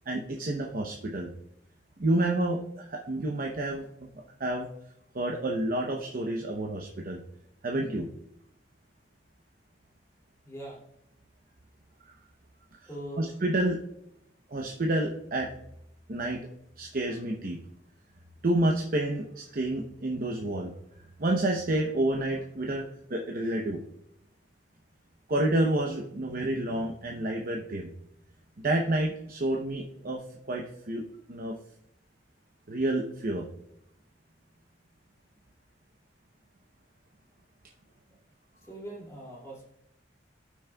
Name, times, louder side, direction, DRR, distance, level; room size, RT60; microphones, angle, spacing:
voice 1, 0.1-1.3 2.0-3.8 4.4-4.7 5.1-7.2 7.6-8.1 12.0-12.1 12.8-12.9 13.2-13.8 14.5-15.5 16.1-16.4 16.8-17.6 18.4-20.7 21.2-22.8 23.1-23.8 25.3-27.9 28.6-31.0 31.3-31.5 32.7-33.4, right 1 dB, 50° right, 1 dB, 0.8 m, -29 dB
voice 2, 10.4-10.8 12.9-13.4 38.6-39.7, right 1 dB, 15° left, -5 dB, 2.5 m, -41 dB
17.0 x 6.2 x 2.3 m, 0.80 s
head